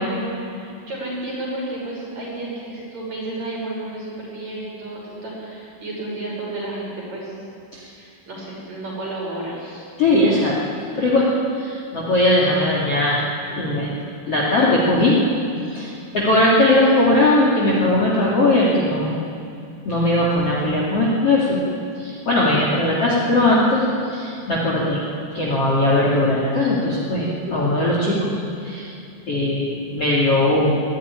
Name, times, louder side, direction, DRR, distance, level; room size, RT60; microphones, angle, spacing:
voice 1, 0.0-7.3 7.9-9.9, right 2 dB, 35° right, -4 dB, 7.0 m, -32 dB
voice 2, 10.0-10.6 10.9-11.3 11.5-13.2 13.5-14.0 14.3-15.2 15.7-19.2 19.8-21.6 22.0-25.0 25.3-28.3 28.6-28.9 29.3-30.8, left 1 dB, 35° left, -4 dB, 2.9 m, -19 dB
21.5 x 15.0 x 9.9 m, 2.5 s
omnidirectional pair, 5.5 m